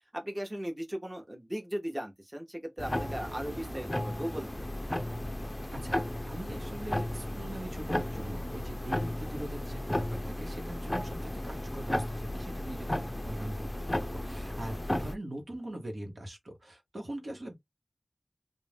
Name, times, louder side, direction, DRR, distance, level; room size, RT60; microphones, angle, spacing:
voice 1, 0.1-4.7, equal, 20° right, 0.9 m, -37 dB
sound 1, 2.8-15.1, left 1 dB, 20° left, 0.4 m, -34 dB
voice 2, 5.7-17.6, right 1 dB, 70° right, 1.0 m, -42 dB
2.5 x 2.1 x 3.3 m
wide cardioid pair, 50°, 0 cm